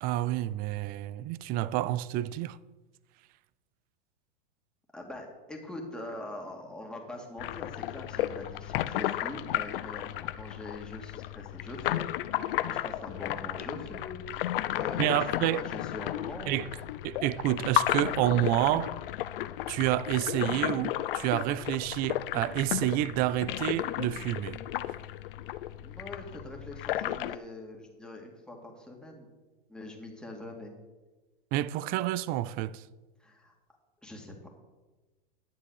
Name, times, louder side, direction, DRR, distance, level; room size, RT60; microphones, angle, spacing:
voice 1, 0.0-2.6 15.0-15.6 16.5-16.7 17.0-19.0 19.7-24.6 31.5-32.8, right 14 dB, 30° right, 0.4 m, -29 dB
voice 2, 4.9-14.2 14.7-16.9 25.8-29.3 29.7-30.7 33.2-33.5 34.0-34.5, left 1 dB, 5° left, 2.2 m, -43 dB
sound 1, 7.4-27.4, left 14 dB, 65° left, 0.6 m, -33 dB
10.5 x 7.2 x 6.5 m
hypercardioid pair, 125°, 29 cm